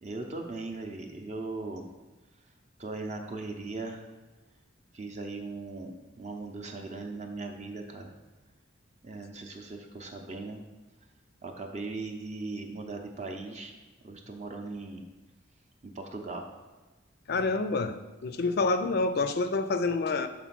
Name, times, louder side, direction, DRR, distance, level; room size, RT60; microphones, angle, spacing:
voice 1, 0.0-1.9 2.8-4.0 4.9-8.1 9.0-10.6 11.4-13.7 14.0-15.1 15.8-16.5, right 3 dB, 35° right, 3 dB, 0.6 m, -39 dB
voice 2, 17.3-20.3, left 3 dB, 50° left, 10 dB, 0.4 m, -28 dB
6.0 x 3.8 x 5.8 m, 1.2 s
head